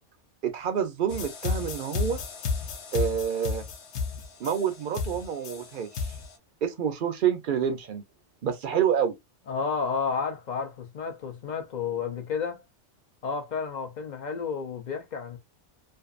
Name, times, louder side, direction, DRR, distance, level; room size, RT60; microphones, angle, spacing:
voice 1, 0.4-2.2 2.9-3.6 4.4-6.1 6.6-8.0 8.4-9.1, right 8 dB, 60° right, 0.6 m, -28 dB
sound 1, 1.1-6.3, left 5 dB, 70° left, 0.9 m, -32 dB
voice 2, 9.5-12.6 13.2-15.4, left 5 dB, 50° left, 0.6 m, -31 dB
2.6 x 2.4 x 2.4 m
omnidirectional pair, 1.2 m